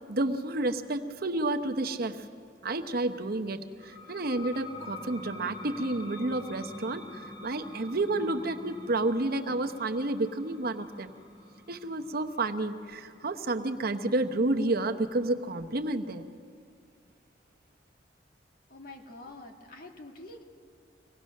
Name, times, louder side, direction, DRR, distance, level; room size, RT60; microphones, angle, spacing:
voice 1, 0.1-2.2 2.6-7.0 7.4-11.1 11.7-16.3, right 2 dB, 55° right, 7 dB, 0.9 m, -30 dB
sound 1, 3.8-15.1, left 1 dB, 25° left, 2.6 m, -46 dB
voice 2, 18.7-20.4, left 2 dB, 55° left, 3 dB, 1.8 m, -46 dB
24.5 x 18.0 x 6.5 m, 2.3 s
head